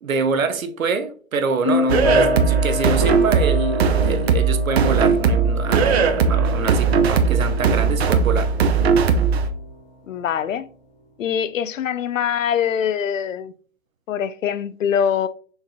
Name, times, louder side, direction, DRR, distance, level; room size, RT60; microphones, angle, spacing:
voice 1, 0.0-8.5, right 5 dB, 80° right, 0.8 m, -25 dB
sound 1, 1.6-9.7, left 2 dB, 35° left, 0.9 m, -27 dB
sound 2, 1.9-9.5, right 5 dB, 50° right, 0.6 m, -18 dB
voice 2, 10.1-10.7 11.2-13.5 14.1-15.3, left 8 dB, 70° left, 0.5 m, -23 dB
4.3 x 3.4 x 2.3 m
hypercardioid pair, 145°, 40 cm